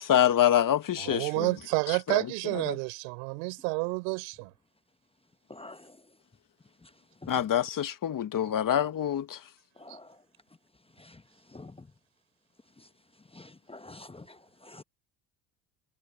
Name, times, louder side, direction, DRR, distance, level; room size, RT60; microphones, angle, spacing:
voice 1, 0.0-1.5 2.1-2.3 2.7-2.8 7.3-9.4, left 10 dB, 40° left, 1.5 m, -26 dB
voice 2, 1.0-4.5 9.9-10.0, right 34 dB, 80° right, 5.4 m, -30 dB
voice 3, 5.5-5.9 7.2-7.3 9.8-10.1 11.0-11.2 11.5-11.7 13.3-14.4 14.6-14.8, left 2 dB, 10° left, 0.9 m, -47 dB
supercardioid pair, 80°, 48 cm